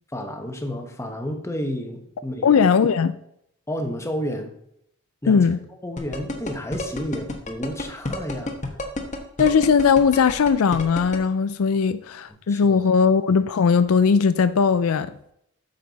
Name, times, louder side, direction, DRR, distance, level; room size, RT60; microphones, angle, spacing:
voice 1, 0.1-2.6 3.7-4.5 5.2-5.5 5.8-8.5 12.5-12.8, equal, 15° left, 1.0 m, -31 dB
voice 2, 2.4-3.2 5.3-5.6 9.4-15.3, left 6 dB, 75° left, 0.4 m, -19 dB
sound 1, 6.0-11.2, left 2 dB, 35° left, 1.1 m, -29 dB
8.5 x 6.7 x 4.0 m
head